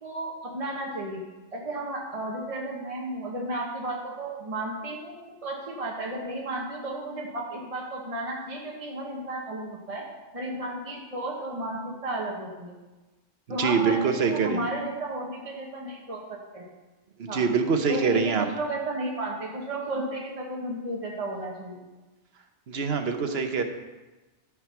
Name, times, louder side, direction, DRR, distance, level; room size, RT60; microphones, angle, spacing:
voice 1, 0.0-1.2 1.5-10.1 10.3-12.7 13.5-14.0 14.3-16.6 17.3-17.4 17.9-21.8, right 1 dB, 30° right, -3 dB, 1.4 m, -33 dB
voice 2, 13.5-14.6 17.2-18.5 22.7-23.6, right 5 dB, 60° right, 6 dB, 1.1 m, -24 dB
13.0 x 4.8 x 5.8 m, 1.2 s
omnidirectional pair, 1.2 m